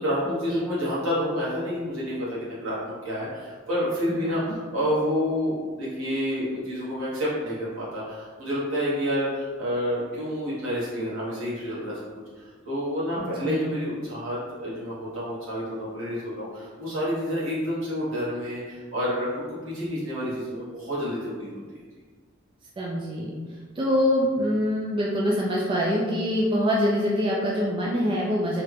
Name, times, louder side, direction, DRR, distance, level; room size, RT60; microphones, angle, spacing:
voice 1, 0.0-12.0 12.4-21.6, equal, 70° right, -9 dB, 1.4 m, -29 dB
voice 2, 13.2-13.7 22.8-23.3 23.8-28.6, equal, 25° right, -4 dB, 0.4 m, -25 dB
3.1 x 2.4 x 3.3 m, 1.5 s
head